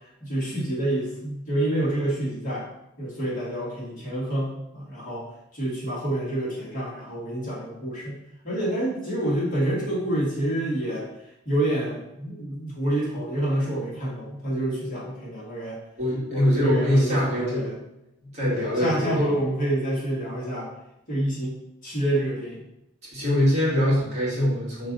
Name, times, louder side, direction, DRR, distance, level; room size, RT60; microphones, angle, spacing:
voice 1, 0.2-2.7 3.0-5.3 5.5-8.2 8.4-11.1 11.5-15.8 16.3-17.7 18.5-20.7 21.1-21.5 21.8-22.6, right 1 dB, 40° left, -6 dB, 2.2 m, -27 dB
voice 2, 16.0-17.7 18.3-19.3 23.1-24.9, equal, 35° right, -7 dB, 2.2 m, -23 dB
5.1 x 4.1 x 5.4 m, 0.86 s
head